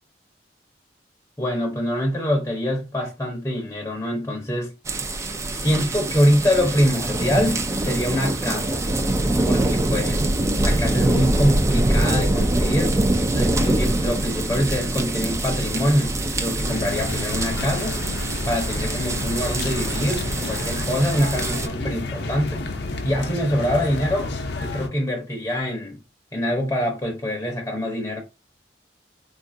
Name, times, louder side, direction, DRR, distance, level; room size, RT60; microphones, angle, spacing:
voice 1, 1.4-4.7 5.5-8.8 9.4-10.3 10.6-12.9 13.3-18.0 18.4-22.7 23.0-24.3 24.6-26.0 26.3-28.2, equal, 15° left, 0.7 m, -24 dB
sound 1, 4.9-21.7, right 1 dB, 15° right, 0.3 m, -24 dB
sound 2, 16.7-24.9, left 2 dB, 65° left, 0.6 m, -30 dB
3.7 x 2.4 x 2.5 m
head